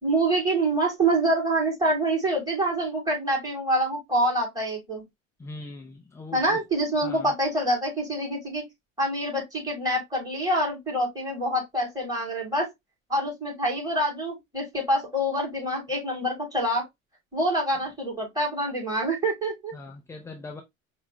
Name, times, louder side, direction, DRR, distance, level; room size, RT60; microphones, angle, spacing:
voice 1, 0.0-5.0 6.3-8.6 9.0-12.7 13.1-16.8 17.3-19.7, right 1 dB, 10° right, 3.0 m, -26 dB
voice 2, 5.4-6.6 7.0-7.3 19.7-20.6, left 3 dB, 10° left, 0.3 m, -41 dB
5.6 x 2.3 x 2.9 m
figure-of-eight pair, 75°, 41 cm